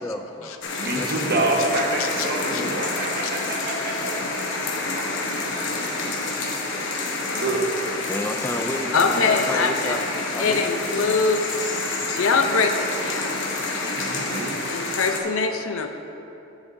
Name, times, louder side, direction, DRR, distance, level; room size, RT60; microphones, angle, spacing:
voice 1, 0.0-0.5 1.0-1.5 2.6-2.8 8.1-10.0 10.3-10.6, left 1 dB, 10° left, 6 dB, 0.4 m, -31 dB
sound 1, 0.6-15.2, left 3 dB, 60° left, 1.0 m, -28 dB
voice 2, 0.7-4.1 4.9-5.0 7.3-7.6 13.9-14.5, right 2 dB, 50° right, -1 dB, 1.2 m, -27 dB
voice 3, 8.9-10.0 10.4-11.4 12.0-13.3 14.7-15.9, left 4 dB, 75° left, 6 dB, 0.6 m, -23 dB
16.5 x 7.1 x 2.7 m, 2.8 s
head